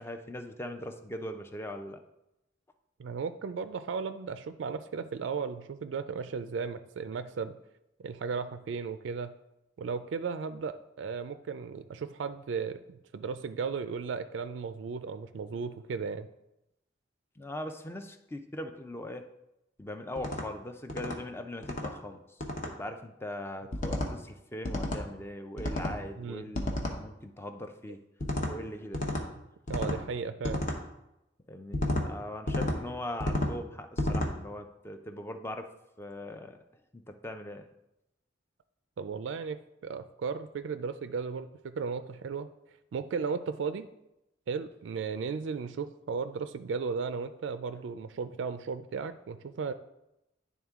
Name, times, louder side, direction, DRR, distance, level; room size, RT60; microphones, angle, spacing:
voice 1, 0.0-2.0 17.4-19.2 19.8-22.2 22.6-29.0 31.5-35.7 36.0-36.6 36.9-37.7, left 1 dB, 15° left, 6 dB, 0.5 m, -40 dB
voice 2, 3.0-7.5 8.0-9.3 9.8-16.3 26.2-26.5 29.7-30.6 39.0-42.5 42.9-43.9 44.5-49.7, right 5 dB, 75° right, 11 dB, 0.3 m, -35 dB
sound 1, 20.2-20.4 20.9-21.2 21.6-21.9 22.4-22.7 23.7-24.1 24.6-25.0 25.6-26.0 26.5-27.0 28.2-28.5 28.9-29.2 29.7-30.0 30.4-30.8 31.7-32.1 32.5-32.8 33.2-33.5 34.0-34.3, left 1 dB, 40° left, 0.8 m, -31 dB
10.5 x 3.7 x 3.6 m, 0.87 s
head